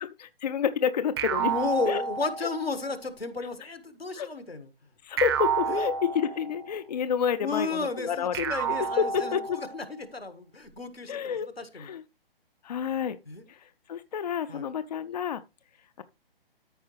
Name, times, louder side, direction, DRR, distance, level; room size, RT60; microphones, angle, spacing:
voice 1, 0.0-1.5 1.9-2.0 2.4-2.5 4.1-4.3 5.0-9.6 11.1-11.5 11.7-12.0 12.6-13.2 13.5-15.4 16.0-16.1, left 7 dB, 45° left, 0.5 m, -29 dB
sound 1, 1.2-2.8 5.2-6.8 8.3-9.8, right 7 dB, 25° right, 0.8 m, -30 dB
voice 2, 1.4-4.7 5.7-5.9 7.4-11.9 13.3-13.4 14.5-14.7, left 3 dB, 85° left, 1.7 m, -33 dB
13.5 x 4.7 x 3.1 m
figure-of-eight pair, 135°, 29 cm